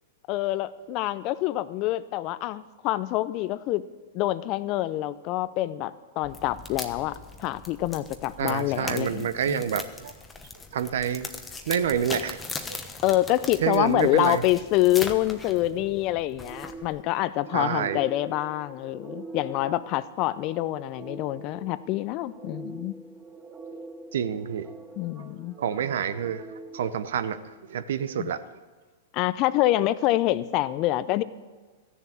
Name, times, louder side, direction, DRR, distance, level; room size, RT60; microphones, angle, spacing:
voice 1, 0.3-3.8 4.1-9.6 13.0-22.9 25.0-25.6 28.2-28.3 29.1-31.2, left 15 dB, 40° left, 16 dB, 0.6 m, -26 dB
sound 1, 6.2-17.0, left 3 dB, 15° left, 1.1 m, -40 dB
voice 2, 8.4-10.1 10.7-11.3 11.7-12.4 13.6-14.4 17.5-18.0 23.7-23.9 24.1-24.7 25.6-26.4 26.7-28.4, right 8 dB, 70° right, 13 dB, 0.7 m, -28 dB
sound 2, 16.4-27.7, right 3 dB, 20° right, 0.9 m, -44 dB
14.0 x 7.1 x 8.3 m, 1.3 s
hypercardioid pair, 120°, 0 cm